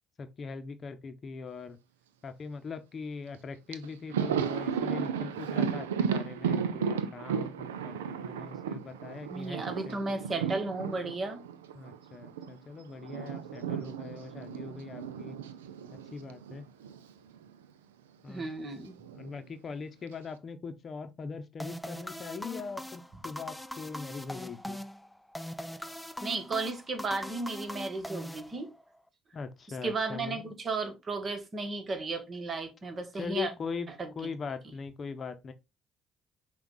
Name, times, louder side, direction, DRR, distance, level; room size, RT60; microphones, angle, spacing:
voice 1, 0.2-1.8 2.2-10.2 11.7-15.4 16.1-16.7 18.2-18.5 19.1-24.8 29.3-30.5 33.2-33.9 34.2-35.5, left 5 dB, 45° left, 0.7 m, -41 dB
Thunder, 3.3-3.4 3.7-12.5 12.8-17.1 17.4-17.5 18.7-19.4, right 7 dB, 90° right, 0.4 m, -34 dB
voice 2, 9.3-11.4 18.3-19.0 26.2-28.7 29.8-33.5 34.0-34.1, right 3 dB, 40° right, 1.2 m, -34 dB
sound 1, 21.6-29.0, equal, 5° left, 0.4 m, -41 dB
5.7 x 2.4 x 3.8 m
hypercardioid pair, 55°, 0 cm